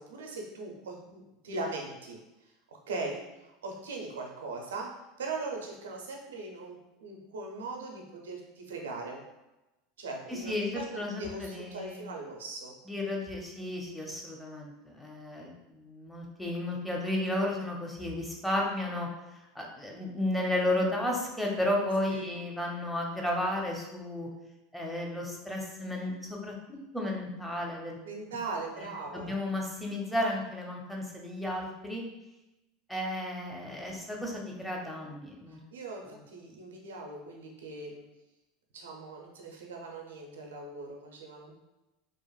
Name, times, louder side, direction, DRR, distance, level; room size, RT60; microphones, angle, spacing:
voice 1, 0.0-4.9 5.2-9.2 10.0-12.7 22.1-22.3 28.0-29.3 35.5-38.0 38.7-41.5, right 3 dB, 85° right, 0 dB, 0.5 m, -40 dB
voice 2, 10.3-12.1 12.9-19.1 19.5-24.3 24.7-28.0 29.1-32.0 32.9-35.6, left 1 dB, 5° left, -1 dB, 0.7 m, -33 dB
2.8 x 2.5 x 2.3 m, 0.99 s
hypercardioid pair, 90°, 0 cm